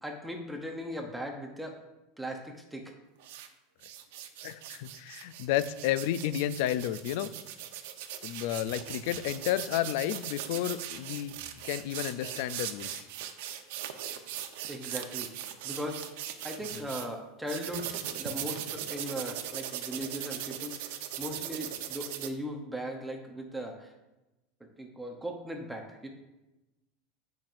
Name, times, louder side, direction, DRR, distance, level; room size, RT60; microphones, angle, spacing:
voice 1, 0.0-1.8 2.2-2.9 14.7-15.3 15.6-16.0 16.4-20.9 21.2-23.9 24.8-26.1, equal, 5° right, 2 dB, 0.7 m, -38 dB
sound 1, 3.2-3.5 3.8-17.1 17.5-22.3, right 11 dB, 70° right, 0.8 m, -39 dB
voice 2, 4.4-7.3 8.2-11.3 11.6-13.1 16.7-16.9, left 12 dB, 55° left, 14 dB, 0.4 m, -31 dB
16.0 x 6.0 x 2.6 m, 1.0 s
supercardioid pair, 175°, 0 cm